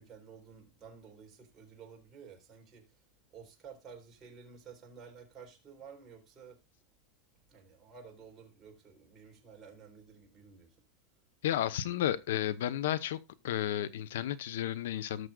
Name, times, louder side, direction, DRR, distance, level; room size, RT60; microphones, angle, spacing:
voice 1, 0.0-6.6 7.5-10.8, right 6 dB, 25° right, 3.9 m, -53 dB
voice 2, 11.4-13.2 13.4-15.3, left 11 dB, 85° left, 0.9 m, -32 dB
18.5 x 6.5 x 2.4 m
supercardioid pair, 150°, 0 cm